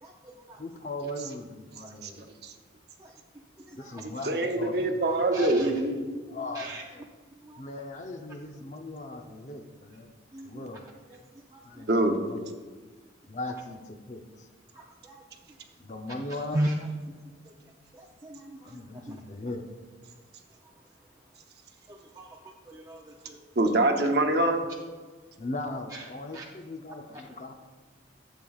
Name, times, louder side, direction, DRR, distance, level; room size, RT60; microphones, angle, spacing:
voice 1, 0.0-0.6 1.8-1.9 3.0-3.1 3.7-4.0 5.3-5.7 6.5-6.8 7.4-7.6 10.3-10.7 11.1-11.2 11.5-11.8 14.7-15.2 16.5-16.7 17.9-18.8 19.1-19.2 21.9-22.3 22.7-23.4 25.9-26.0 26.3-26.4, right 1 dB, 20° right, -1 dB, 0.4 m, -37 dB
voice 2, 0.6-2.3 3.7-4.7 5.3-5.8 6.3-7.0 7.6-10.1 10.4-10.9 11.6-12.4 13.3-14.5 15.8-16.7 18.6-19.7 25.4-27.5, left 2 dB, 40° left, 5 dB, 0.6 m, -39 dB
voice 3, 4.2-6.4 11.9-12.2 23.6-24.6, right 2 dB, 60° right, 4 dB, 0.8 m, -25 dB
12.0 x 7.5 x 2.4 m, 1.4 s
head